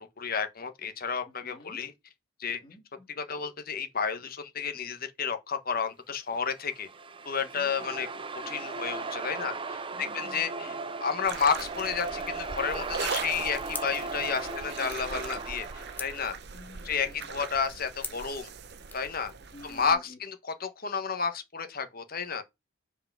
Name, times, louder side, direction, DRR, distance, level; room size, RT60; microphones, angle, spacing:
voice 1, 0.0-1.9 2.4-2.6 3.1-6.9 7.2-8.1 8.5-16.4 16.8-18.5 18.9-19.3 19.6-22.4, left 6 dB, 45° left, 1.2 m, -31 dB
voice 2, 1.4-1.8 2.6-3.1 7.5-8.2 9.9-10.8 14.4-14.9 16.5-17.3 19.5-20.2, left 2 dB, 25° left, 2.9 m, -50 dB
sound 1, 6.4-16.3, right 4 dB, 25° right, 0.6 m, -37 dB
sound 2, 11.2-19.9, right 5 dB, 50° right, 0.8 m, -40 dB
sound 3, 13.7-19.1, left 4 dB, 10° left, 0.8 m, -46 dB
5.7 x 4.8 x 5.9 m
head